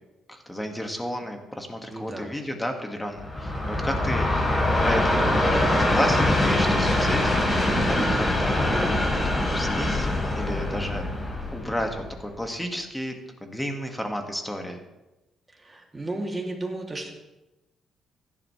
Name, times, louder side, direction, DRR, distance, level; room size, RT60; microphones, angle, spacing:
voice 1, 0.3-4.3 4.8-8.7 9.2-11.1 11.5-13.2 13.4-14.8, equal, 10° left, 4 dB, 1.9 m, -32 dB
voice 2, 1.9-2.3 15.6-17.1, right 2 dB, 20° right, 0 dB, 2.7 m, -33 dB
Train, 3.2-12.4, left 1 dB, 25° left, 3.8 m, -23 dB
15.5 x 11.0 x 3.3 m, 1.0 s
cardioid pair, 90°, 0 cm